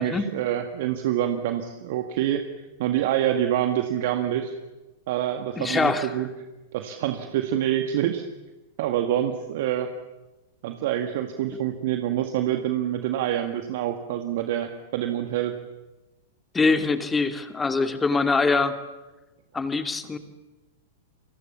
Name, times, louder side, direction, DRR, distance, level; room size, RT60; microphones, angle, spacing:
voice 1, 0.0-2.5 2.8-4.5 5.1-6.3 6.7-8.2 8.8-9.9 10.6-15.6, right 11 dB, 55° right, 6 dB, 1.9 m, -26 dB
voice 2, 5.6-6.1 16.5-18.8 19.5-20.2, left 4 dB, 15° left, 7 dB, 2.4 m, -23 dB
30.0 x 24.5 x 7.3 m, 1.1 s
figure-of-eight pair, 100°, 0 cm